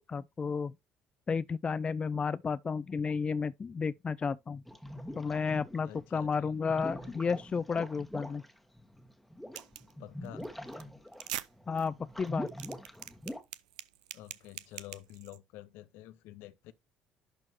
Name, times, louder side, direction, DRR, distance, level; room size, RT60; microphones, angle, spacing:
voice 1, 0.1-0.7 1.3-4.6 5.2-8.4 11.7-12.5, left 5 dB, 25° left, 0.3 m, -32 dB
sound 1, 4.7-6.0 6.4-13.4, equal, 5° left, 1.5 m, -43 dB
voice 2, 5.8-6.6 7.0-7.1 10.0-10.5 14.1-16.7, left 14 dB, 65° left, 0.7 m, -49 dB
sound 2, 9.5-9.9 10.2-10.4 10.7-10.8 11.1-11.5 11.8-11.9 12.3-15.4, right 14 dB, 75° right, 0.5 m, -42 dB
11.0 x 4.4 x 3.0 m
figure-of-eight pair, 55°, 4 cm